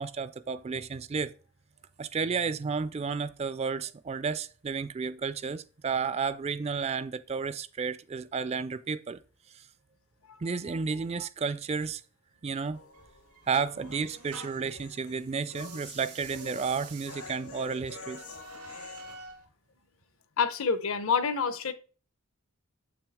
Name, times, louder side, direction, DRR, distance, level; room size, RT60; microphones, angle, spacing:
voice 1, 0.0-1.3 2.0-9.2 9.5-9.6 10.4-12.0 12.4-12.8 13.5-18.2, right 5 dB, 30° right, 0.3 m, -32 dB
sound 1, 12.7-19.2, left 3 dB, 85° left, 2.0 m, -48 dB
sound 2, 12.9-14.8 15.5-19.4, right 3 dB, 90° right, 2.0 m, -48 dB
voice 2, 20.4-21.7, left 6 dB, 65° left, 0.8 m, -27 dB
7.5 x 5.9 x 3.5 m
head